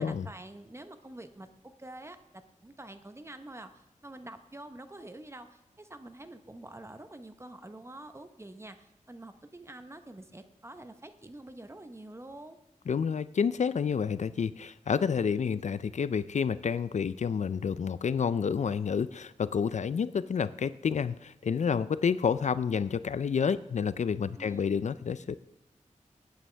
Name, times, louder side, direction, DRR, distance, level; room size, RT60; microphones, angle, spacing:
voice 1, 0.0-12.6 24.4-24.7, right 1 dB, 20° right, 8 dB, 0.9 m, -47 dB
voice 2, 12.9-25.4, left 6 dB, 60° left, 15 dB, 0.4 m, -29 dB
18.0 x 9.0 x 3.4 m, 0.97 s
wide cardioid pair, 110°, 13 cm